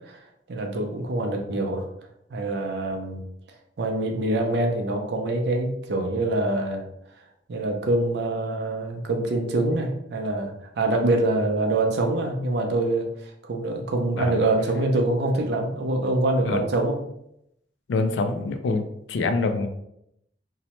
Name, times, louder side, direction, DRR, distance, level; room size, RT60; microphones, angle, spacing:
voice 1, 0.5-1.8 2.3-3.2 3.8-6.8 7.5-13.1 13.4-17.0, right 2 dB, 65° right, 3 dB, 0.5 m, -25 dB
voice 2, 17.9-18.8 19.1-19.7, left 3 dB, 85° left, 7 dB, 0.3 m, -25 dB
2.7 x 2.1 x 2.9 m, 0.78 s
head